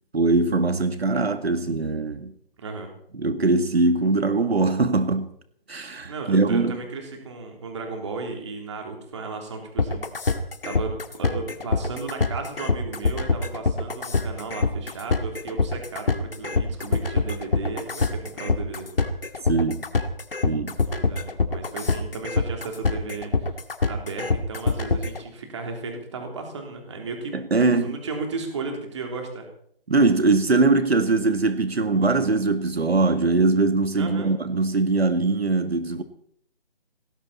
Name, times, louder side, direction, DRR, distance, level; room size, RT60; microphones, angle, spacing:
voice 1, 0.1-2.3 3.2-5.3 5.7-6.8 19.5-19.8 20.5-20.8 27.3-28.0 29.9-36.0, right 3 dB, 90° right, 1.9 m, -21 dB
voice 2, 2.6-2.9 6.1-10.0 10.6-10.9 11.2-18.9 20.8-23.5 23.9-27.4 27.8-29.5 33.9-34.3, right 4 dB, 30° right, 3.4 m, -34 dB
sound 1, 9.8-25.2, left 4 dB, 65° left, 2.2 m, -24 dB
19.0 x 17.5 x 4.2 m
hypercardioid pair, 170°, 30 cm